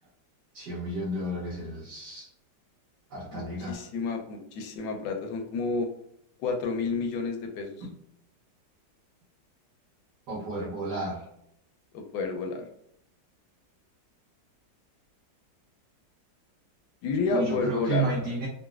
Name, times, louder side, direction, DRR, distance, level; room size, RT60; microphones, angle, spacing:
voice 1, 0.5-2.3 3.1-3.8 7.8-7.9 10.3-11.2 17.3-18.5, right 2 dB, 70° right, -7 dB, 1.5 m, -32 dB
voice 2, 3.3-5.9 6.4-7.9 11.9-12.7 17.0-18.2, left 4 dB, 80° left, 4 dB, 1.2 m, -30 dB
3.9 x 2.2 x 2.3 m, 0.76 s
omnidirectional pair, 2.0 m